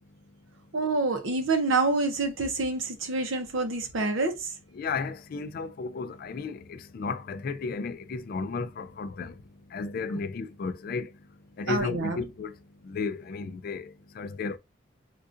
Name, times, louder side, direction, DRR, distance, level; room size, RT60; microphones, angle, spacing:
voice 1, 0.7-4.6 11.7-12.2, right 3 dB, 85° right, 0.7 m, -27 dB
voice 2, 4.7-9.4 9.7-11.1 11.6-12.6 12.8-14.6, left 4 dB, 50° left, 0.3 m, -34 dB
3.7 x 2.4 x 2.5 m
head